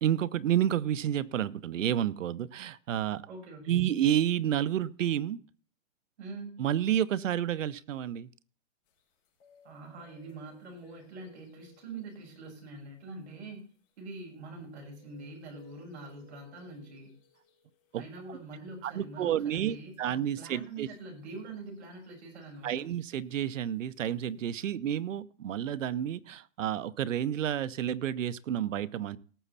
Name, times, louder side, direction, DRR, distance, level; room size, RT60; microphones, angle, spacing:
voice 1, 0.0-3.2 3.7-5.4 6.6-8.3 17.9-18.0 18.8-20.9 22.6-29.2, right 10 dB, 70° right, 18 dB, 1.0 m, -30 dB
voice 2, 3.3-3.9 6.2-6.6 9.6-13.7 14.0-17.1 18.0-22.9, right 3 dB, 55° right, 2 dB, 6.4 m, -44 dB
sound 1, 8.8-14.2 14.6-18.9 19.2-19.3 19.7-23.4 23.9-24.3, left 8 dB, 25° left, 5.9 m, -63 dB
18.5 x 7.2 x 4.2 m, 0.41 s
hypercardioid pair, 160°, 39 cm